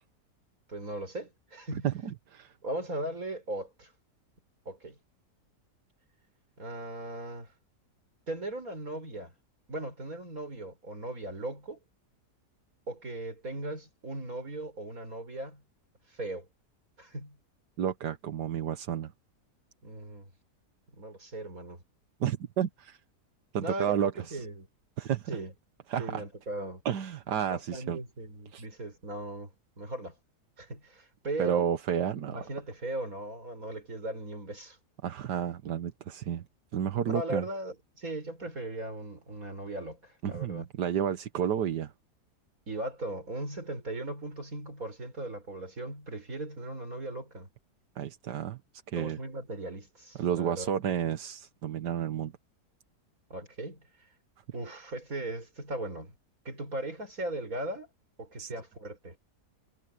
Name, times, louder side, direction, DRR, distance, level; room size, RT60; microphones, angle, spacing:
voice 1, 0.7-1.9 2.6-3.9 4.6-5.0 6.6-7.5 8.3-9.3 9.7-11.8 12.9-15.6 16.1-16.5 17.0-17.4 19.8-20.3 20.9-21.8 23.6-24.7 25.3-25.5 26.0-26.8 27.5-30.2 30.6-31.7 32.3-34.8 37.0-40.7 42.7-47.5 48.9-50.7 53.3-53.8 54.5-56.1 56.4-57.9 58.2-59.2, right 1 dB, 55° right, 6.5 m, -38 dB
voice 2, 1.8-2.5 17.8-19.1 22.2-23.0 23.5-24.4 25.0-25.3 25.9-26.2 26.8-28.0 28.5-28.6 31.4-32.4 35.0-36.4 36.7-37.4 40.2-41.9 48.0-48.6 48.9-49.2 50.2-52.3 58.4-58.5, right 9 dB, 85° right, 1.7 m, -31 dB
omnidirectional pair, 1.8 m